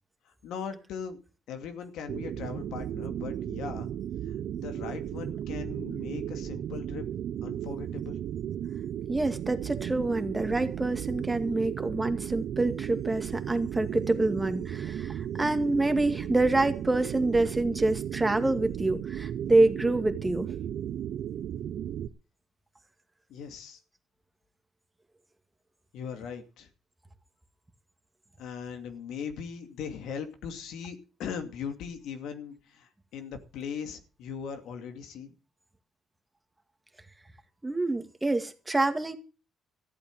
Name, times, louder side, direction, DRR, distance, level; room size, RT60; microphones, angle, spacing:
voice 1, 0.2-1.2 1.5-3.9 4.3-7.0 7.4-8.2 23.3-23.8 25.9-26.7 28.4-35.4, left 7 dB, 85° left, 2.5 m, -39 dB
sound 1, 2.1-22.1, right 10 dB, 75° right, 0.7 m, -35 dB
voice 2, 9.1-20.5 37.6-39.1, right 2 dB, 15° right, 2.2 m, -26 dB
14.5 x 8.6 x 7.6 m
cardioid pair, 90°, 0 cm